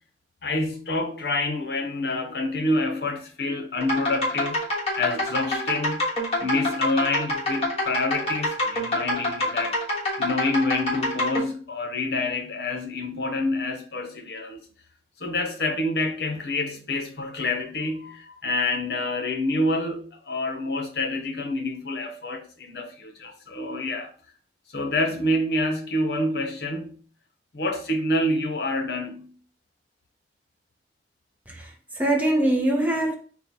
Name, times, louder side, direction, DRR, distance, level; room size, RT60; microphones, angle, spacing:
voice 1, 0.4-4.6 5.0-6.0 6.4-9.8 10.2-14.6 15.2-24.1 24.7-27.0 27.5-29.3, left 2 dB, 65° left, 0.8 m, -27 dB
sound 1, 3.8-11.4, left 1 dB, 35° left, 1.4 m, -26 dB
voice 2, 31.5-33.1, right 1 dB, 10° right, 0.6 m, -23 dB
4.3 x 2.2 x 4.0 m
head